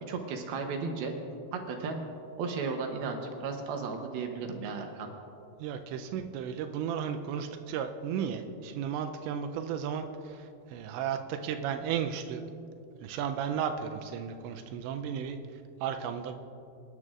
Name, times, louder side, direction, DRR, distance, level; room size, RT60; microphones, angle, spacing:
voice 1, 0.1-1.1 1.5-2.0 2.4-5.1, right 4 dB, 75° right, 4 dB, 2.5 m, -34 dB
voice 2, 5.6-12.4 13.0-15.4 15.8-16.4, right 8 dB, 90° right, 6 dB, 2.9 m, -34 dB
25.5 x 10.5 x 2.5 m, 2.7 s
omnidirectional pair, 5.1 m